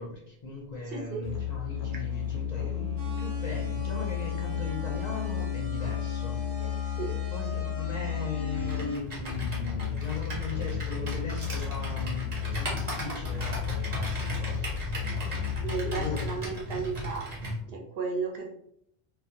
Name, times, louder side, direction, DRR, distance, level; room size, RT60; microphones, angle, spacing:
voice 1, 0.0-7.0 7.3-12.3 12.6-14.8 15.9-16.9, left 2 dB, 55° left, -3 dB, 0.5 m, -38 dB
voice 2, 0.9-1.2 7.0-7.1 15.6-17.3 17.7-18.5, right 5 dB, 70° right, -1 dB, 0.8 m, -34 dB
Musical instrument, 1.2-16.5, left 10 dB, 80° left, 0.9 m, -33 dB
sound 1, 3.0-9.0, left 1 dB, 15° right, 0.7 m, -41 dB
Computer keyboard, 8.5-17.6, equal, 45° right, 0.9 m, -36 dB
2.3 x 2.1 x 2.7 m, 0.70 s
omnidirectional pair, 1.0 m